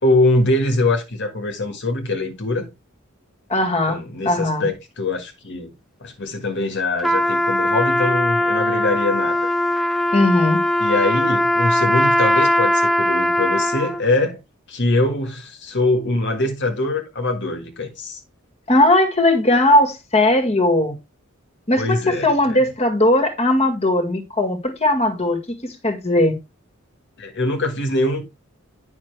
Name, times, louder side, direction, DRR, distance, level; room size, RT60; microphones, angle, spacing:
voice 1, 0.0-2.7 3.9-5.7 6.0-9.5 10.8-14.4 14.7-18.2 21.8-22.6 27.2-28.2, left 2 dB, 60° left, 1.6 m, -23 dB
voice 2, 3.5-4.7 10.1-10.6 18.7-21.0 21.7-26.4, left 1 dB, 30° left, 1.9 m, -18 dB
Trumpet, 7.0-14.0, left 1 dB, ahead, 0.6 m, -19 dB
9.7 x 5.8 x 3.3 m
head